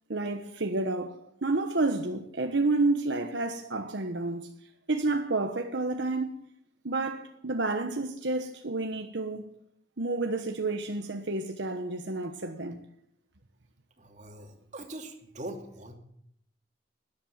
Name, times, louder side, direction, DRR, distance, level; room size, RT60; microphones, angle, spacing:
voice 1, 0.1-4.5 4.9-6.5 6.8-9.4 10.0-12.8, right 2 dB, 70° right, 1.2 m, -30 dB
voice 2, 14.0-16.0, right 1 dB, 40° right, 2.6 m, -42 dB
13.0 x 10.5 x 8.8 m
head